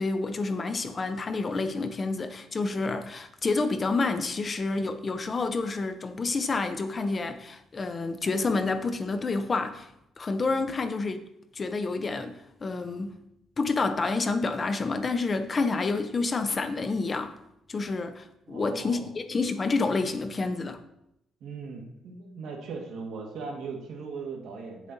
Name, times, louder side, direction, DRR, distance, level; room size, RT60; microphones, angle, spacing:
voice 1, 0.0-9.9 10.2-11.2 11.5-13.2 13.6-17.3 17.7-20.8, left 3 dB, 35° left, 0.8 m, -29 dB
voice 2, 18.5-19.1 21.4-24.9, right 4 dB, 80° right, 1.9 m, -39 dB
7.4 x 7.2 x 4.0 m
cardioid pair, 90°, 0 cm